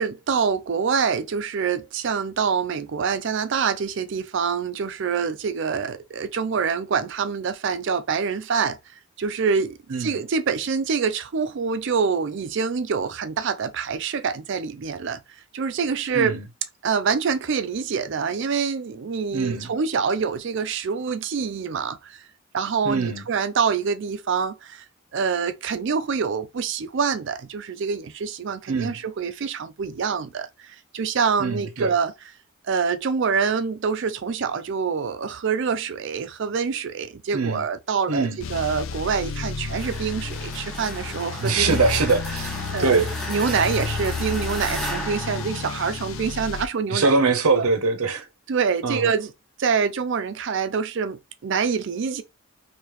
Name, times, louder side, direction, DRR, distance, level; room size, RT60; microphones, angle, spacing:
voice 1, 0.0-8.8 9.2-15.2 15.5-16.4 16.8-22.2 22.5-24.8 25.1-30.5 30.9-32.1 32.7-41.8 42.7-47.1 47.5-47.7 48.5-49.3 49.6-52.2, right 6 dB, 55° right, 0.4 m, -26 dB
voice 2, 16.1-16.5 19.3-19.7 22.8-23.2 28.7-29.0 31.4-31.9 37.3-37.6 38.1-38.4 41.4-43.1 46.9-48.3 48.8-49.1, right 4 dB, 85° right, 0.7 m, -23 dB
sound 1, 38.4-46.6, left 5 dB, 65° left, 0.4 m, -32 dB
sound 2, 39.8-46.5, right 1 dB, ahead, 0.6 m, -35 dB
3.2 x 2.8 x 3.0 m
head